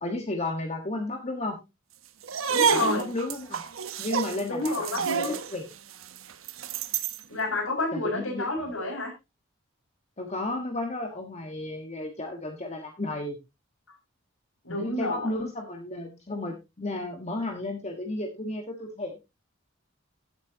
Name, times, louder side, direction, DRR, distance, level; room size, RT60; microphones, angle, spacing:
voice 1, 0.0-1.6 2.7-3.6 4.0-5.6 7.9-8.5 10.2-13.4 14.7-19.2, left 2 dB, 30° left, 4 dB, 1.5 m, -33 dB
sound 1, 2.2-7.2, right 6 dB, 85° right, 1.1 m, -29 dB
voice 2, 2.5-3.0 4.5-5.3 7.3-9.1 13.9-14.0 14.6-15.3, left 2 dB, 85° left, 1 dB, 6.4 m, -29 dB
15.0 x 8.5 x 2.8 m, 0.24 s
head